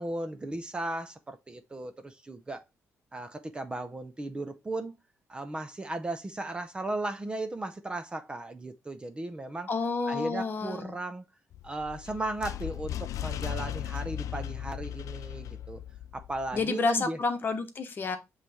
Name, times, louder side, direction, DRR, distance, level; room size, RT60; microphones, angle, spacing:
voice 1, 0.0-2.6 3.1-5.0 5.3-9.7 10.1-11.2 11.6-15.8 16.1-17.2, right 2 dB, 20° right, 0.6 m, -36 dB
voice 2, 9.7-10.9 16.5-18.2, left 4 dB, 40° left, 1.1 m, -29 dB
sound 1, 11.5-16.7, left 11 dB, 75° left, 0.3 m, -37 dB
7.4 x 3.2 x 4.3 m
cardioid pair, 145°, 6 cm